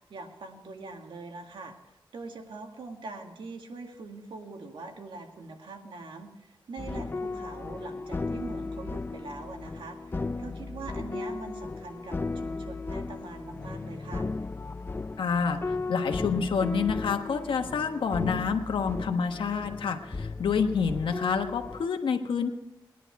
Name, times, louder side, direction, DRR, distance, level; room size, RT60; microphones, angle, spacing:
voice 1, 0.1-14.3, right 3 dB, 80° right, 3 dB, 2.1 m, -43 dB
sound 1, 6.8-21.9, left 3 dB, 25° left, 0.5 m, -35 dB
voice 2, 15.2-22.5, left 6 dB, 85° left, 5 dB, 1.3 m, -28 dB
20.5 x 11.0 x 4.7 m, 0.91 s
wide cardioid pair, 100°, 8 cm